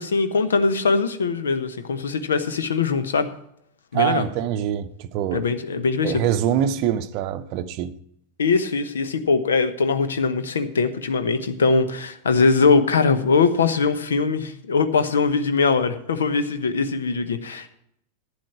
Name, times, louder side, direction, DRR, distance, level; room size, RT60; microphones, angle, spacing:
voice 1, 0.0-3.3 3.9-4.3 5.3-6.2 8.4-17.7, left 4 dB, 65° left, 0.9 m, -21 dB
voice 2, 3.9-5.4 6.0-7.9, right 10 dB, 45° right, 0.7 m, -24 dB
11.5 x 8.9 x 4.6 m
figure-of-eight pair, 90°, 0 cm